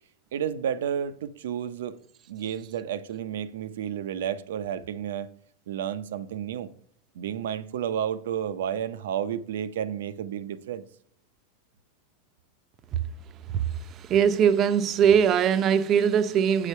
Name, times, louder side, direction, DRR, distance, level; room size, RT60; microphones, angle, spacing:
voice 1, 0.3-2.0 2.3-5.3 5.7-6.7 7.1-10.9, right 9 dB, 80° right, 0.7 m, -31 dB
voice 2, 14.0-16.7, right 8 dB, 30° right, 0.6 m, -21 dB
8.4 x 5.0 x 5.4 m
supercardioid pair, 140°, 0 cm